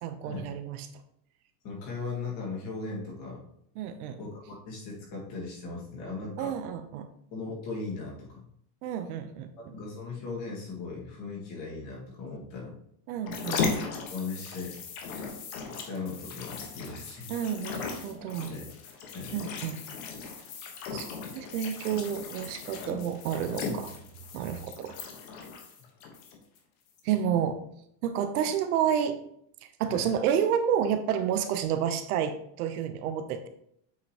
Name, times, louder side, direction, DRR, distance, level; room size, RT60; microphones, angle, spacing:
voice 1, 0.0-0.9 3.8-4.2 6.4-7.1 8.8-9.7 13.1-13.6 17.3-18.6 19.3-19.8 20.9-21.1 21.3-24.0 24.3-25.0 27.0-27.6 28.0-29.2 29.6-33.5, right 9 dB, 65° right, 8 dB, 0.8 m, -30 dB
voice 2, 1.6-3.5 4.2-6.5 7.3-8.4 9.7-12.8 14.1-14.8 15.8-17.3 18.5-18.7 19.1-19.3 29.9-30.1, left 4 dB, 35° left, -3 dB, 1.9 m, -38 dB
sound 1, 13.2-26.6 27.0-27.1, left 5 dB, 55° left, 1.3 m, -37 dB
8.1 x 4.9 x 2.9 m, 0.72 s
supercardioid pair, 175°, 48 cm